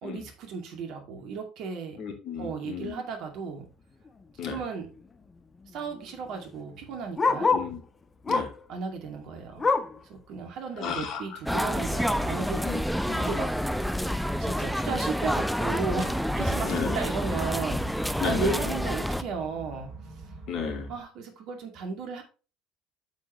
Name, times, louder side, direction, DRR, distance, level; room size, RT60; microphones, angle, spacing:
voice 1, 0.0-2.0 2.4-3.7 4.5-4.9 5.7-7.5 8.7-9.7 10.0-12.8 13.2-13.5 14.4-19.9 20.9-22.2, right 5 dB, 60° right, 4 dB, 2.3 m, -35 dB
voice 2, 2.0-3.0 4.4-4.6 7.4-7.8 8.3-8.5 10.8-11.6 12.6-12.8 13.1-13.3 16.6-17.0 18.2-18.6 20.5-20.9, left 6 dB, 55° left, 3 dB, 2.6 m, -34 dB
Bark, 4.1-4.3 4.6-4.7 4.9-7.8 8.2-8.7 9.0-10.0 10.5-10.6 11.0-11.1 11.8-11.9, left 4 dB, 25° left, 1.1 m, -28 dB
sound 1, 11.5-19.2, equal, ahead, 0.7 m, -28 dB
sound 2, 15.8-21.0, right 3 dB, 40° right, 4.8 m, -44 dB
8.3 x 7.6 x 3.1 m, 0.34 s
figure-of-eight pair, 60°, 0 cm